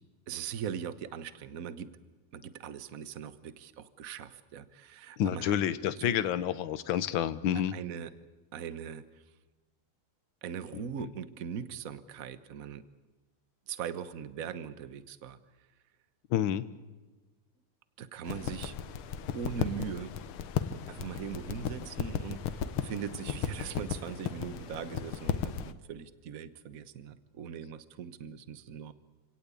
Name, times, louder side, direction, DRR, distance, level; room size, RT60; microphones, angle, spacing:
voice 1, 0.3-1.9 2.3-5.6 6.0-6.2 7.7-8.1 8.5-9.0 10.4-12.8 13.7-15.4 18.0-18.8 19.3-20.2 20.9-28.9, right 8 dB, 50° right, 14 dB, 1.3 m, -40 dB
voice 2, 5.2-7.8 10.7-10.8 16.3-16.7, left 10 dB, 70° left, 14 dB, 1.7 m, -29 dB
sound 1, 18.3-25.7, left 8 dB, 90° left, 1.9 m, -35 dB
28.0 x 17.5 x 8.5 m, 1.2 s
omnidirectional pair, 2.3 m